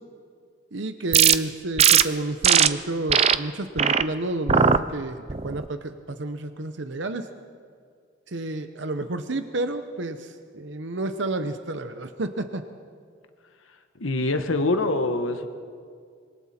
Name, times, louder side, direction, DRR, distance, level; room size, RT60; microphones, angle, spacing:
voice 1, 0.7-7.3 8.3-12.6, right 2 dB, 65° right, 8 dB, 0.9 m, -30 dB
sound 1, 1.1-1.3 1.8-2.0 2.4-2.7 3.1-3.3 3.8-4.0 4.5-4.8 5.3-5.6, right 8 dB, 30° right, 0.5 m, -18 dB
voice 2, 14.0-15.5, left 2 dB, 80° left, 7 dB, 1.4 m, -24 dB
26.0 x 24.0 x 4.4 m, 2.1 s
head